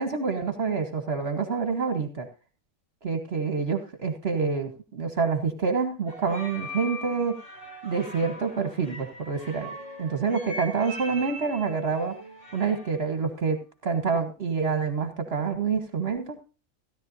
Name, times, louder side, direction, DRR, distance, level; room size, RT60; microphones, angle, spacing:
voice 1, 0.0-2.3 3.0-7.4 7.8-9.7 10.0-12.2 12.5-16.4, right 5 dB, 50° right, 6 dB, 1.4 m, -27 dB
sound 1, 6.1-13.0, equal, 70° left, 6.7 m, -41 dB
16.5 x 11.0 x 2.6 m, 0.35 s
omnidirectional pair, 1.4 m